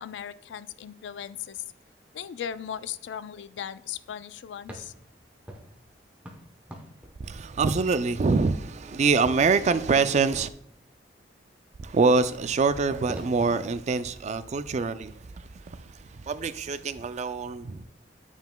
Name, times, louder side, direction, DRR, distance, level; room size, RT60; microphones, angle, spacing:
voice 1, 0.0-1.6 2.1-4.9, left 9 dB, 90° left, 0.3 m, -37 dB
sound 1, 4.6-9.4 12.4-12.5 13.1-13.9, equal, 10° right, 0.9 m, -46 dB
voice 2, 7.2-10.5 11.8-17.9, right 4 dB, 40° right, 0.3 m, -25 dB
9.1 x 5.7 x 2.2 m
head